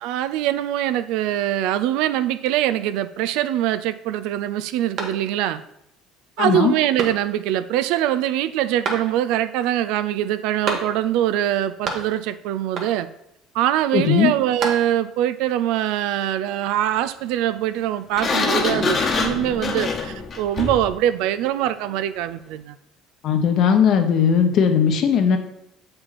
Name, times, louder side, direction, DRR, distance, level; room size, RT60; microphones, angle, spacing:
voice 1, 0.0-5.6 6.4-13.1 13.5-22.8, right 12 dB, 80° right, 13 dB, 0.4 m, -23 dB
sound 1, 4.9-5.6 6.1-6.2 6.9-7.6 8.8-9.5 10.6-11.3 11.5-12.3 12.7-13.2 14.2-15.2, right 4 dB, 55° right, 1.4 m, -31 dB
voice 2, 6.4-6.7 13.9-14.3 23.2-25.4, left 7 dB, 55° left, 6 dB, 1.0 m, -18 dB
Sliding door, 18.2-20.9, left 4 dB, 35° left, 1.1 m, -24 dB
7.2 x 5.5 x 4.1 m, 0.80 s
cardioid pair, 115°, 0 cm